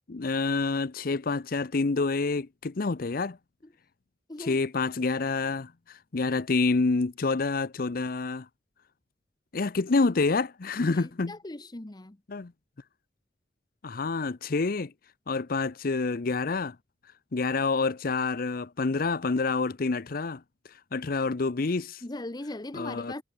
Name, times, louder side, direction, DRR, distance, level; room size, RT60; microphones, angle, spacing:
voice 1, 0.1-3.4 4.4-8.5 9.5-11.3 12.3-12.5 13.8-14.9 15.3-16.8 17.3-20.4 20.9-22.0 22.7-23.1, left 3 dB, 55° left, 0.7 m, -28 dB
voice 2, 4.3-4.7 10.8-12.2 22.0-23.2, left 1 dB, 25° left, 0.9 m, -39 dB
head